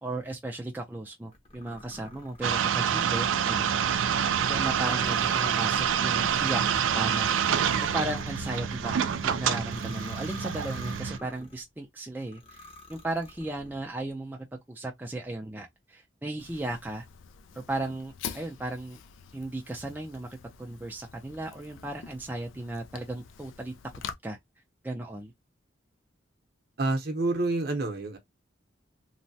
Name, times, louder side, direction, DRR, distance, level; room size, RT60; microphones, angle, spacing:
voice 1, 0.0-3.7 4.1-6.6 6.9-17.0 17.6-19.0 19.3-23.7 24.2-24.4 24.8-25.3, right 2 dB, 10° right, 0.4 m, -36 dB
sound 1, 1.3-11.6 12.2-13.8, left 2 dB, 30° left, 0.8 m, -48 dB
sound 2, 2.4-11.2, right 8 dB, 90° right, 0.4 m, -27 dB
Fire, 16.4-24.1, left 7 dB, 80° left, 0.4 m, -45 dB
voice 2, 26.8-28.2, right 2 dB, 50° right, 0.7 m, -28 dB
3.1 x 2.1 x 2.6 m
head